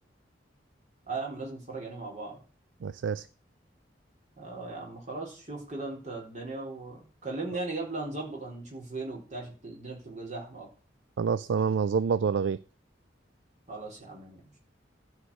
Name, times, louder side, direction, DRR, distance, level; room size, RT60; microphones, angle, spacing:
voice 1, 1.1-2.4 4.4-10.7 13.7-14.6, right 3 dB, 40° right, 3.9 m, -38 dB
voice 2, 2.8-3.3 11.2-12.6, right 6 dB, 80° right, 0.4 m, -27 dB
13.0 x 4.9 x 6.5 m
head